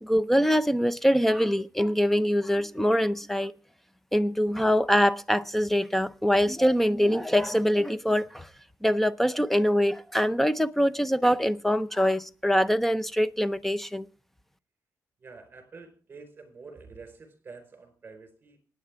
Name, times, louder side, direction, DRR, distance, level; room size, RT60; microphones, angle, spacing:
voice 1, 0.0-3.5 4.1-8.5 8.8-14.1, equal, 5° left, 0.5 m, -24 dB
voice 2, 15.2-18.7, right 4 dB, 30° right, 4.4 m, -48 dB
26.0 x 9.4 x 3.5 m
wide cardioid pair, 155°, 6 cm